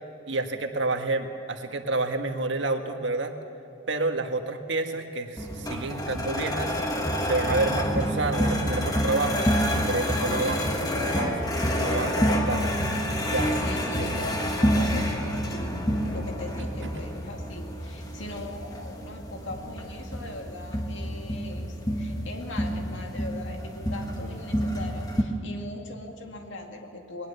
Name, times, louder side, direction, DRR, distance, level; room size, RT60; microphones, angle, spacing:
voice 1, 0.3-3.3 3.9-6.8 7.2-10.6 11.1-11.3 11.8-12.7 13.3-13.6 14.0-14.3 16.9-17.0, right 2 dB, 65° right, 5 dB, 1.5 m, -29 dB
sound 1, 5.4-25.2, equal, 20° left, 1.3 m, -28 dB
voice 2, 10.2-11.4 13.6-27.3, left 1 dB, 70° left, 2 dB, 2.2 m, -40 dB
20.0 x 19.5 x 6.8 m, 2.8 s
head